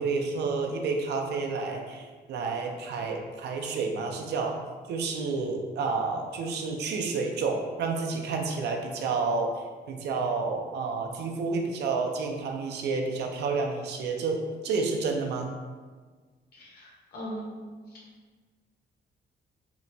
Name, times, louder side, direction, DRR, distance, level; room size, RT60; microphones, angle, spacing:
voice 1, 0.0-4.6 4.9-15.5, right 4 dB, 80° right, 3 dB, 0.4 m, -30 dB
voice 2, 16.5-17.6 17.9-18.0, equal, 65° left, -4 dB, 0.8 m, -40 dB
2.9 x 2.1 x 2.6 m, 1.5 s
wide cardioid pair, 170°, 17 cm